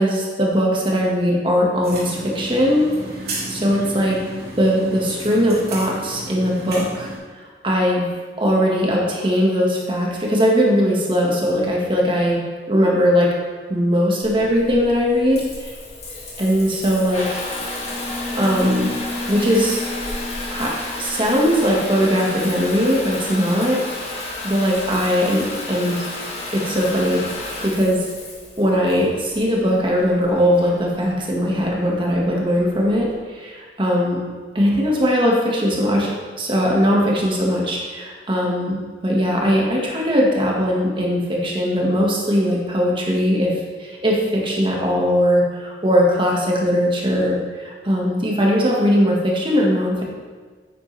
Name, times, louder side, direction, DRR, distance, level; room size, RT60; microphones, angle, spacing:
voice 1, 0.0-2.9 3.5-4.2 4.6-7.1 7.6-8.1 8.4-13.3 13.7-15.7 16.4-17.4 18.4-18.9 19.3-19.8 20.5-24.2 24.4-26.0 26.5-28.1 28.6-34.3 34.6-43.5 43.8-50.0, equal, 30° right, -2 dB, 1.8 m, -20 dB
sound 1, 1.8-7.2, right 1 dB, 60° right, 2.7 m, -33 dB
Water tap faucet / Bathtub (filling or washing) / Trickle dribble, 14.2-33.1, left 2 dB, 35° left, 1.9 m, -31 dB
9.2 x 8.7 x 3.4 m, 1.5 s
head